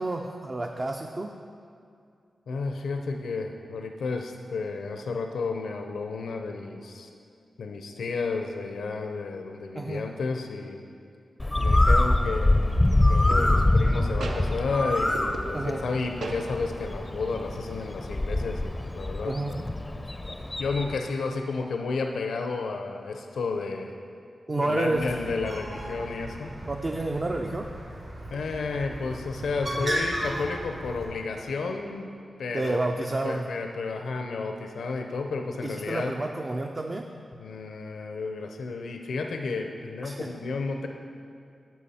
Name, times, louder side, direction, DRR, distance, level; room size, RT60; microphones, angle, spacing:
voice 1, 0.0-1.3 9.8-10.1 15.5-15.8 19.2-19.5 24.5-25.1 26.6-27.7 32.5-33.5 35.6-37.1 40.0-40.3, right 2 dB, 35° right, 3 dB, 0.4 m, -30 dB
voice 2, 2.5-7.1 7.6-10.8 11.6-19.3 19.9-20.1 20.6-23.9 24.6-26.5 28.3-32.1 32.4-36.1 37.4-40.9, left 4 dB, 90° left, 4 dB, 0.5 m, -32 dB
Bird, 11.4-21.0, left 1 dB, 20° left, 0.5 m, -25 dB
sound 1, 12.0-12.4 13.3-13.9 14.2-15.9 16.2-17.0, right 3 dB, 80° right, 0.6 m, -38 dB
Bird 2, 24.9-31.0, right 1 dB, 65° right, 2.3 m, -35 dB
10.5 x 6.3 x 4.2 m, 2.4 s
cardioid pair, 75°, 0 cm